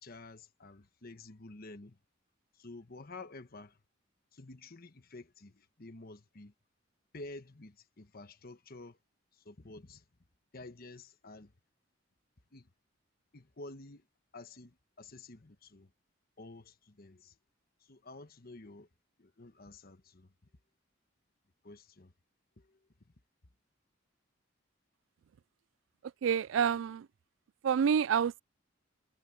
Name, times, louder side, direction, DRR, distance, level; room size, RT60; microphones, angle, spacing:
voice 1, 0.0-2.0 2.5-3.8 4.3-6.5 7.1-9.0 9.3-10.0 10.5-11.5 12.5-12.7 13.3-14.1 14.3-15.9 16.4-17.3 17.8-18.9 19.2-20.3 21.6-22.1 22.6-22.8, left 2 dB, 50° left, 1.2 m, -50 dB
voice 2, 26.0-27.1 27.6-28.4, right 7 dB, 70° right, 0.3 m, -28 dB
head